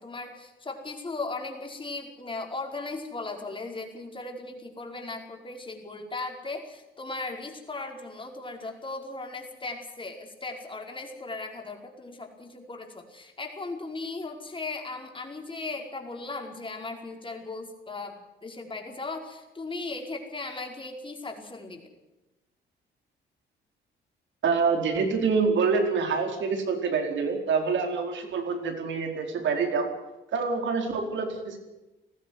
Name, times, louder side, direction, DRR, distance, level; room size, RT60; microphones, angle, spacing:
voice 1, 0.0-21.9, left 3 dB, 25° left, 2 dB, 5.0 m, -37 dB
voice 2, 24.4-29.9 30.3-31.6, right 5 dB, 70° right, 4 dB, 4.6 m, -26 dB
20.0 x 15.0 x 9.6 m, 1.0 s
cardioid pair, 90°, 20 cm